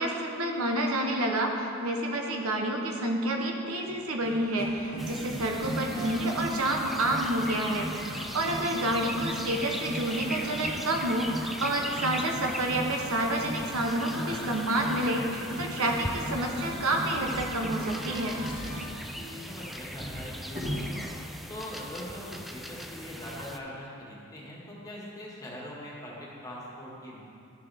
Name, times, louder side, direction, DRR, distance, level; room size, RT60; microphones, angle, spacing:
voice 1, 0.0-18.3, right 1 dB, 80° right, 1 dB, 1.0 m, -29 dB
sound 1, 3.7-18.9, right 1 dB, 50° right, 2.2 m, -38 dB
sound 2, 5.0-23.6, equal, ahead, 0.3 m, -40 dB
voice 2, 8.4-8.7 19.0-21.1 21.5-27.2, left 1 dB, 15° left, -5 dB, 1.7 m, -42 dB
Drawer open or close, 17.0-18.0 18.3-20.9 21.8-22.0 22.3-22.4, equal, 25° right, 2.1 m, -39 dB
12.5 x 6.9 x 3.5 m, 2.6 s
head